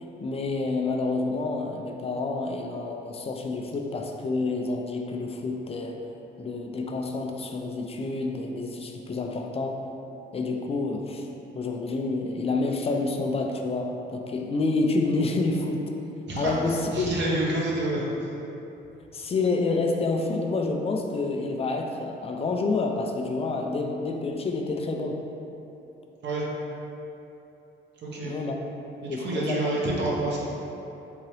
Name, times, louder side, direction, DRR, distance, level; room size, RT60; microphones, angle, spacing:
voice 1, 0.0-6.0 6.4-9.9 10.3-11.3 11.5-15.8 16.4-17.1 19.1-25.2 28.2-28.6 29.1-29.6, left 3 dB, 30° left, 3 dB, 0.3 m, -28 dB
voice 2, 16.9-18.0 26.2-26.5 28.0-28.3 29.0-30.4, right 2 dB, 65° right, -4 dB, 0.9 m, -28 dB
3.8 x 2.8 x 3.1 m, 2.9 s
cardioid pair, 90°, 20 cm